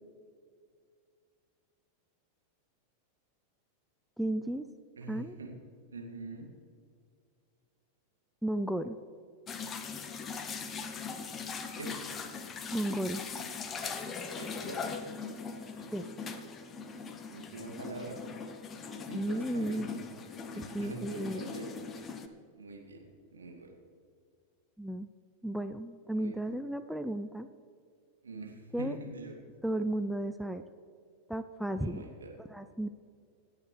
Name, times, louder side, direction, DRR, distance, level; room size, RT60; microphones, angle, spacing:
voice 1, 4.2-4.7 5.1-5.4 8.4-9.0 12.7-13.2 15.9-16.1 19.1-19.9 20.6-21.4 24.8-25.1 25.4-27.5 28.7-29.0 29.6-30.6 31.3-32.1 32.4-32.9, right 1 dB, ahead, 10 dB, 0.5 m, -34 dB
voice 2, 5.0-5.6 5.9-6.5 11.8-12.0 14.2-14.8 17.3-18.2 19.1-19.9 20.5-21.8 22.6-23.0 23.3-23.7 26.1-26.4 28.2-29.4 31.8-32.3, right 3 dB, 70° right, 1 dB, 2.2 m, -44 dB
sound 1, 9.5-22.3, left 5 dB, 25° left, 1.0 m, -40 dB
26.0 x 9.4 x 3.3 m, 2.3 s
figure-of-eight pair, 90°, 0 cm